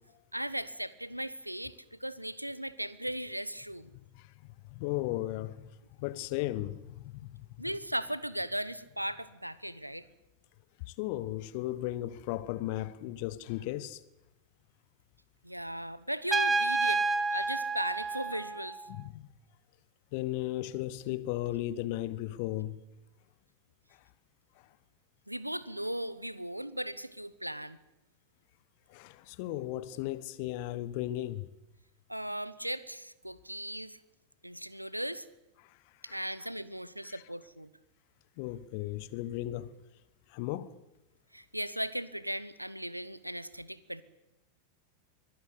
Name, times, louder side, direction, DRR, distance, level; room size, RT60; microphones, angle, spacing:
voice 1, 0.3-3.9 7.6-10.0 15.4-17.0 17.3-18.8 25.3-27.8 32.1-34.0 34.4-35.2 36.0-37.7 41.3-44.0, right 1 dB, 90° right, 0.9 m, -37 dB
voice 2, 3.9-4.3 4.7-5.7 6.0-7.5 10.8-14.0 18.9-19.3 20.1-22.8 28.9-31.5 35.6-35.8 36.1-36.2 37.1-37.2 38.4-39.7 40.3-40.8, left 15 dB, 45° left, 1.1 m, -36 dB
Trumpet, 16.3-18.9, right 3 dB, 15° right, 1.0 m, -29 dB
23.5 x 17.0 x 8.4 m
figure-of-eight pair, 90°, 0 cm